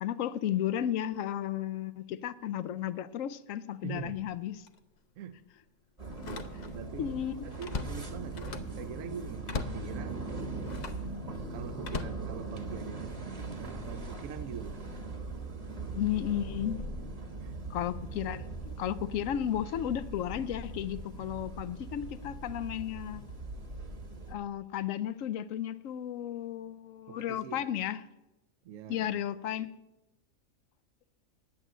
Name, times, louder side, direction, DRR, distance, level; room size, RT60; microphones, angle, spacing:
voice 1, 0.0-4.6 7.0-7.5 16.0-16.8 17.7-23.2 24.3-28.0 28.9-29.7, left 10 dB, 75° left, 0.9 m, -34 dB
voice 2, 3.8-4.2 5.2-5.4 6.2-10.2 11.5-14.8 15.4-15.6 17.4-17.6 27.1-27.7 28.6-29.1, right 8 dB, 80° right, 1.0 m, -44 dB
Slam, 4.0-4.2 4.7-4.8 6.1-6.9 7.3-8.8 9.4-9.9 10.6-11.1 11.8-12.9 13.5-13.8, left 4 dB, 45° left, 0.6 m, -39 dB
sound 1, 6.0-24.3, right 3 dB, 30° right, 1.2 m, -40 dB
9.1 x 8.9 x 7.3 m
omnidirectional pair, 1.4 m